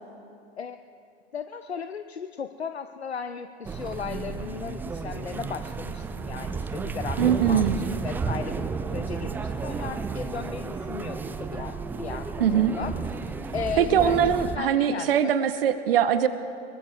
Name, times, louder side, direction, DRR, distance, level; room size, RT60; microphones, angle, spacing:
voice 1, 1.3-14.2 14.5-15.3, left 6 dB, 85° left, 10 dB, 0.6 m, -36 dB
sound 1, 3.6-14.6, right 5 dB, 5° right, 0.3 m, -32 dB
voice 2, 7.2-7.8 12.4-12.8 13.8-16.3, right 9 dB, 65° right, 12 dB, 0.9 m, -22 dB
24.5 x 22.0 x 2.4 m, 2.8 s
figure-of-eight pair, 90°, 32 cm